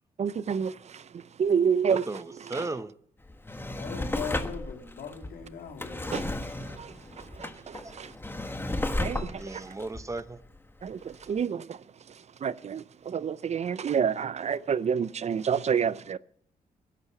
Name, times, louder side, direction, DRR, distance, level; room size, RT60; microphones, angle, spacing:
voice 1, 0.2-2.2 2.5-2.6 6.1-8.2 9.0-9.6 10.8-16.2, right 7 dB, 50° right, 0.6 m, -29 dB
voice 2, 1.9-2.9 7.8-7.9 9.2-10.4, right 2 dB, 20° right, 0.8 m, -36 dB
Drawer open or close, 3.2-10.9 11.4-11.5, left 2 dB, 15° left, 1.4 m, -34 dB
voice 3, 3.7-6.1, left 6 dB, 90° left, 3.3 m, -40 dB
13.0 x 10.5 x 6.9 m
cardioid pair, 105°, 15 cm